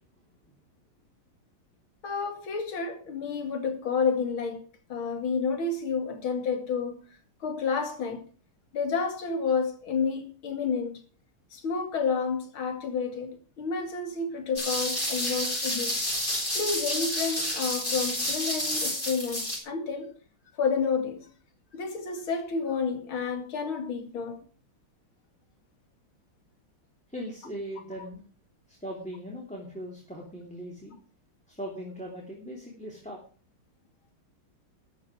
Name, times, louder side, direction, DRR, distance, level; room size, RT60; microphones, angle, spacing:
voice 1, 2.0-4.6 4.9-7.0 7.4-8.3 8.7-11.0 11.5-16.0 16.5-20.1 20.6-21.3 21.7-24.4, left 5 dB, 70° left, 3.0 m, -30 dB
sound 1, 14.6-19.6, left 1 dB, 20° left, 6.1 m, -30 dB
voice 2, 27.1-28.2 28.7-31.0 31.5-33.2, equal, 5° left, 2.9 m, -39 dB
13.5 x 11.0 x 4.9 m
omnidirectional pair, 2.4 m